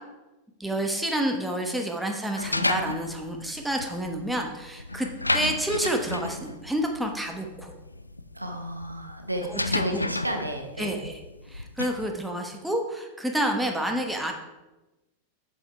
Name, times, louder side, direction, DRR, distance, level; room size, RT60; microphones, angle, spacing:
voice 1, 0.6-5.1 5.3-7.7 9.5-10.0 10.8-11.2 11.5-14.3, right 1 dB, 5° right, 2 dB, 1.1 m, -29 dB
sound 1, 2.4-12.1, left 2 dB, 85° left, 0.3 m, -32 dB
voice 2, 8.3-10.9, right 1 dB, 85° right, 4 dB, 0.9 m, -33 dB
7.7 x 5.4 x 4.7 m, 1.0 s
figure-of-eight pair, 90°, 0 cm